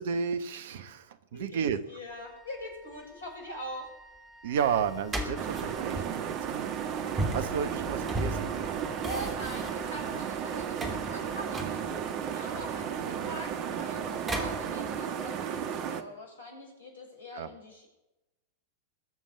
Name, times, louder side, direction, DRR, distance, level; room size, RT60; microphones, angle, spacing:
voice 1, 0.0-1.8 4.4-6.7 7.1-8.5 13.0-13.4 17.3-17.5, right 7 dB, 55° right, 12 dB, 1.2 m, -32 dB
voice 2, 1.3-3.9 9.0-17.9, equal, 70° left, 2 dB, 6.1 m, -43 dB
Wind instrument woodwind instrument, 2.1-12.2, left 1 dB, 10° left, 1.5 m, -55 dB
sound 1, 4.6-15.0, right 1 dB, 20° right, 3.0 m, -38 dB
sound 2, 5.4-16.0, right 8 dB, 40° right, 1.3 m, -34 dB
21.5 x 7.4 x 6.9 m, 0.95 s
figure-of-eight pair, 90°, 0 cm